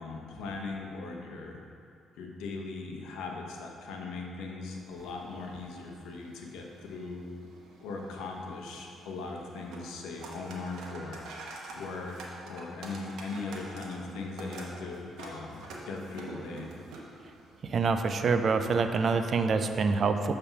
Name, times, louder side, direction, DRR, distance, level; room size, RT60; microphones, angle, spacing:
voice 1, 0.0-1.6 2.2-7.2 7.8-11.2 11.7-16.7, left 3 dB, 90° left, 1 dB, 0.8 m, -39 dB
sound 1, 4.7-19.1, right 2 dB, 85° right, 0.9 m, -47 dB
voice 2, 17.6-20.3, right 4 dB, 50° right, 8 dB, 0.4 m, -26 dB
6.8 x 3.4 x 5.7 m, 2.4 s
cardioid pair, 90°, 0 cm